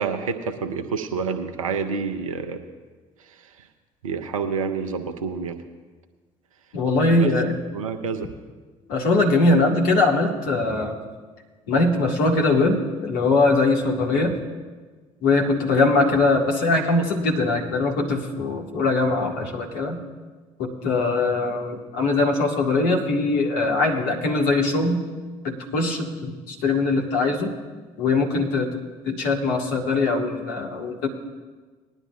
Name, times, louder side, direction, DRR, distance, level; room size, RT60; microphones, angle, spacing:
voice 1, 0.0-2.6 4.0-5.6 7.1-7.3 7.7-8.3, right 5 dB, 80° right, 6 dB, 0.7 m, -28 dB
voice 2, 6.7-7.6 8.9-11.0 11.7-14.4 15.2-20.0 20.6-25.0 25.4-27.5 28.0-31.1, left 3 dB, 60° left, 0 dB, 1.9 m, -21 dB
20.0 x 11.0 x 2.5 m, 1.4 s
figure-of-eight pair, 55°, 17 cm